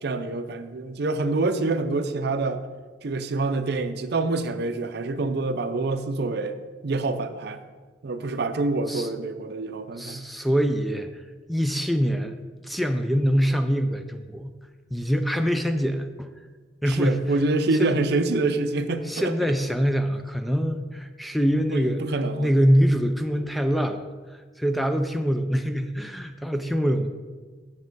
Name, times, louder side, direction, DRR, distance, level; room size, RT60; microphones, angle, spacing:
voice 1, 0.0-2.6 3.0-6.6 6.8-7.6 8.0-10.2 16.9-19.3 21.7-22.5, right 3 dB, 60° right, 9 dB, 0.5 m, -26 dB
voice 2, 9.9-11.2 11.5-12.4 12.6-14.5 14.9-16.3 16.8-17.2 17.8-18.0 19.0-22.0 22.4-24.0 24.3-27.1, equal, ahead, 7 dB, 0.3 m, -24 dB
7.3 x 7.2 x 4.0 m, 1.4 s
head